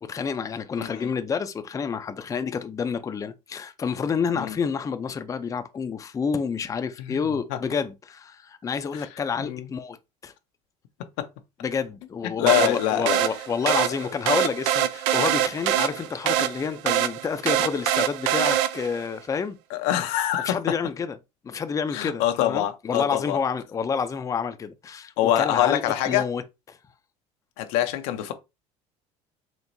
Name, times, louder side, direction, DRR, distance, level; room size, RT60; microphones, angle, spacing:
voice 1, 0.0-10.0 10.2-10.3 11.6-19.6 20.4-21.2 21.4-25.8 26.1-26.4 26.7-26.8, left 6 dB, 20° left, 0.4 m, -29 dB
voice 2, 0.8-1.1 4.4-4.6 7.0-7.2 7.5-7.6 9.0-9.1 9.4-9.7 11.2-11.3 12.2-13.2 13.6-13.7 19.7-20.8 21.9-23.4 25.2-26.3 27.6-28.3, left 12 dB, 80° left, 0.6 m, -25 dB
sound 1, 12.5-19.1, right 11 dB, 85° right, 0.4 m, -24 dB
4.4 x 2.9 x 2.6 m
supercardioid pair, 100°, 15 cm